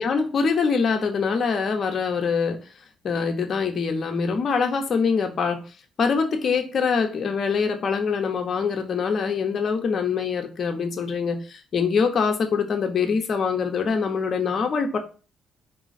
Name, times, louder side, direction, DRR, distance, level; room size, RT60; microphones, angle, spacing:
voice 1, 0.0-2.6 3.0-5.6 6.0-15.0, left 5 dB, 50° left, 4 dB, 0.8 m, -24 dB
4.1 x 2.3 x 3.9 m, 0.34 s
cardioid pair, 90°, 0 cm